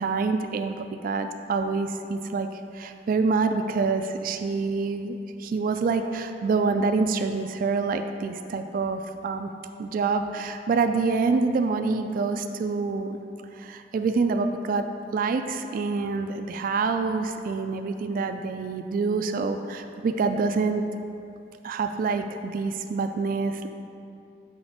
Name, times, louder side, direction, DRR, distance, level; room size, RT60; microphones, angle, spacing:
voice 1, 0.0-9.5 9.8-13.2 13.6-14.9 15.1-20.8 21.6-23.7, right 4 dB, 55° right, 7 dB, 0.3 m, -26 dB
6.4 x 4.4 x 5.8 m, 2.7 s
head